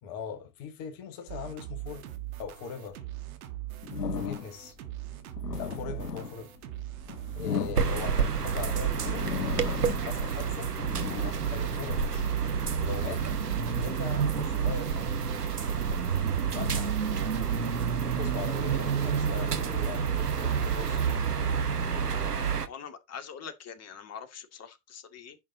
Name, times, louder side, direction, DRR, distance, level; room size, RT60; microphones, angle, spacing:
voice 1, 0.0-2.1 2.4-3.0 4.0-4.8 5.6-6.5 7.3-9.3 10.0-10.7 11.5-12.3 12.8-13.2 13.8-15.3 16.5-16.9 18.0-21.0 22.2-22.4, left 7 dB, 50° left, 2.0 m, -40 dB
sound 1, 1.3-21.2, right 14 dB, 65° right, 1.9 m, -42 dB
sound 2, 3.8-4.7 5.2-8.4 8.9-10.2 10.5-12.5 13.0-15.1, left 6 dB, 90° left, 0.8 m, -37 dB
sound 3, 7.8-22.7, right 6 dB, 85° right, 1.1 m, -29 dB
voice 2, 22.7-25.4, left 7 dB, 35° left, 2.2 m, -44 dB
10.5 x 6.1 x 3.9 m
figure-of-eight pair, 70°, 45 cm